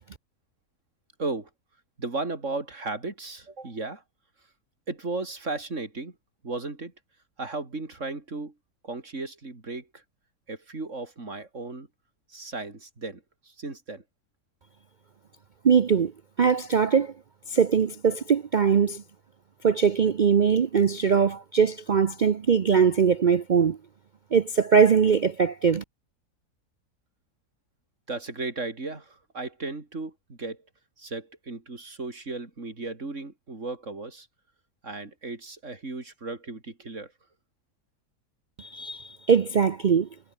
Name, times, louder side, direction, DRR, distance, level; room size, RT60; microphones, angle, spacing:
voice 1, 1.2-1.5 2.0-4.0 4.9-6.1 6.4-6.9 7.4-8.5 8.8-10.0 10.5-11.9 12.3-14.0 28.1-30.6 31.0-34.3 34.8-37.1, right 3 dB, 50° right, 4.0 m, -35 dB
voice 2, 15.6-16.1 16.4-17.1 17.5-19.0 19.6-23.8 24.3-25.8 38.6-40.1, right 6 dB, 70° right, 0.4 m, -21 dB
omnidirectional pair, 1.7 m